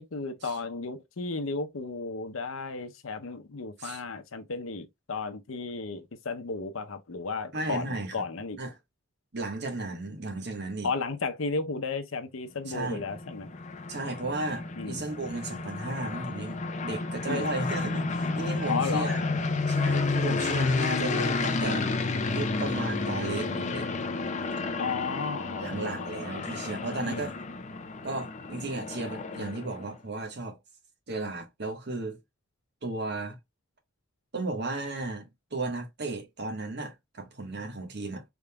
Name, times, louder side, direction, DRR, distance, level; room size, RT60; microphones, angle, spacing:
voice 1, 0.0-8.6 10.8-13.5 14.8-15.1 17.3-17.5 18.7-19.2 24.8-26.1 27.1-27.3, left 4 dB, 80° left, 0.7 m, -34 dB
voice 2, 7.5-8.1 8.6-8.8 9.3-10.9 12.7-13.1 13.9-19.2 19.7-21.9 22.3-23.9 25.6-27.4 28.0-30.6 31.1-32.2 32.8-33.4 34.3-38.2, right 2 dB, 55° right, 1.3 m, -34 dB
sound 1, 12.7-29.9, left 3 dB, 35° left, 0.6 m, -31 dB
3.9 x 3.6 x 2.2 m
head